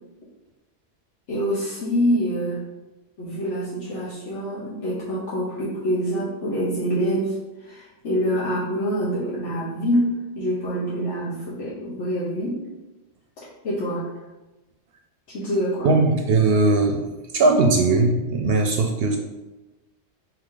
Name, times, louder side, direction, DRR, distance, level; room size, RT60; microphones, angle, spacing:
voice 1, 1.3-2.7 3.2-12.6 13.4-14.1 15.3-15.9, equal, 85° left, -9 dB, 1.3 m, -26 dB
voice 2, 15.8-17.0 17.3-19.2, right 3 dB, 65° right, 3 dB, 0.7 m, -19 dB
4.8 x 2.9 x 3.7 m, 1.1 s
omnidirectional pair, 1.2 m